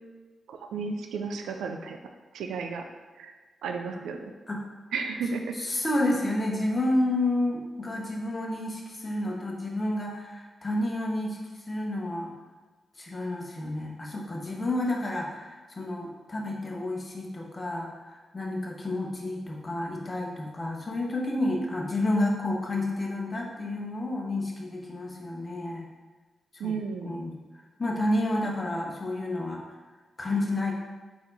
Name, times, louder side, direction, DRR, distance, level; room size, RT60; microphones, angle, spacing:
voice 1, 0.5-2.0 2.3-2.8 3.2-3.3 3.6-4.3 4.9-5.5 26.6-27.2, right 5 dB, 85° right, 4 dB, 0.4 m, -33 dB
voice 2, 5.5-11.4 11.7-12.3 13.0-25.8 26.6-26.7 27.0-27.3 27.8-29.6 30.2-30.7, left 1 dB, 35° left, -1 dB, 1.0 m, -30 dB
4.2 x 2.9 x 4.0 m, 1.3 s
supercardioid pair, 50°, 0 cm